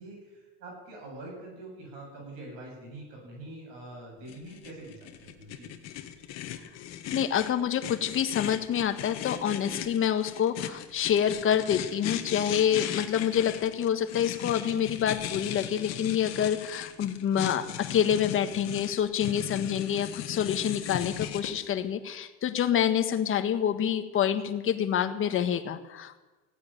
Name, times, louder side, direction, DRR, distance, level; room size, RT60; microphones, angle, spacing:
voice 1, 0.0-5.7, right 2 dB, 85° right, -1 dB, 7.8 m, -44 dB
sound 1, 4.3-21.5, left 11 dB, 65° left, 1.6 m, -37 dB
voice 2, 7.1-26.2, left 9 dB, 45° left, 9 dB, 1.5 m, -27 dB
16.5 x 9.8 x 9.1 m, 1.2 s
cardioid pair, 110°, 29 cm